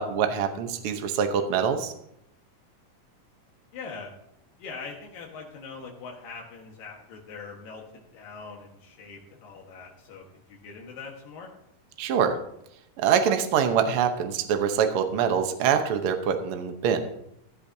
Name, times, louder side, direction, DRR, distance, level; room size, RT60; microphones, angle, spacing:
voice 1, 0.0-1.9 12.0-12.4 13.0-17.1, right 7 dB, 80° right, 6 dB, 1.2 m, -24 dB
voice 2, 3.7-4.1 4.6-11.5, left 4 dB, 85° left, -1 dB, 3.2 m, -42 dB
15.0 x 12.0 x 2.7 m, 0.77 s
omnidirectional pair, 3.8 m